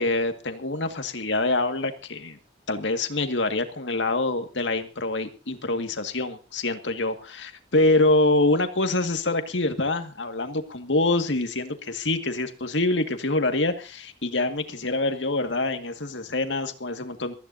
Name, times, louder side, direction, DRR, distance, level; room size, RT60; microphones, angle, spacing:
voice 1, 0.0-2.4 2.7-17.3, left 2 dB, 80° left, 7 dB, 2.0 m, -25 dB
23.5 x 15.0 x 2.8 m, 0.33 s
head